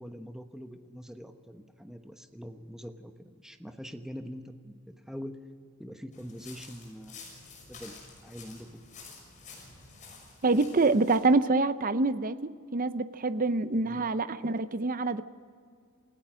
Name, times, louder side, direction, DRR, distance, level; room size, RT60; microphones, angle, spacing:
voice 1, 0.0-5.4 5.8-7.2 7.7-8.8 13.8-14.0, equal, ahead, 6 dB, 1.1 m, -44 dB
sound 1, 6.1-11.2, left 4 dB, 35° left, 6.2 m, -50 dB
voice 2, 10.4-15.2, right 3 dB, 40° right, 12 dB, 0.7 m, -26 dB
28.5 x 16.5 x 6.3 m, 2.1 s
head